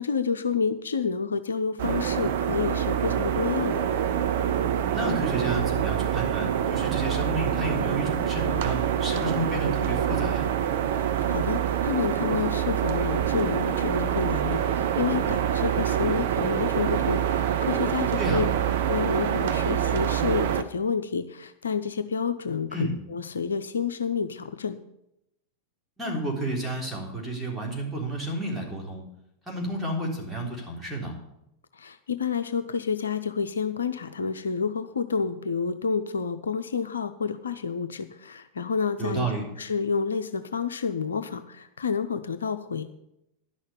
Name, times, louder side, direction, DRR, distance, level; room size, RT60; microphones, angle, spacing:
voice 1, 0.0-3.9 11.3-18.5 18.9-24.8 31.7-39.3 39.6-42.8, left 5 dB, 70° left, 10 dB, 0.6 m, -29 dB
sound 1, 1.8-20.6, right 9 dB, 55° right, 0.8 m, -26 dB
voice 2, 4.9-10.5 18.2-18.4 22.7-22.9 26.0-29.0 29.5-31.1 39.0-39.4, right 1 dB, 5° right, -3 dB, 3.7 m, -31 dB
11.0 x 6.5 x 8.6 m, 0.84 s
figure-of-eight pair, 90°, 0 cm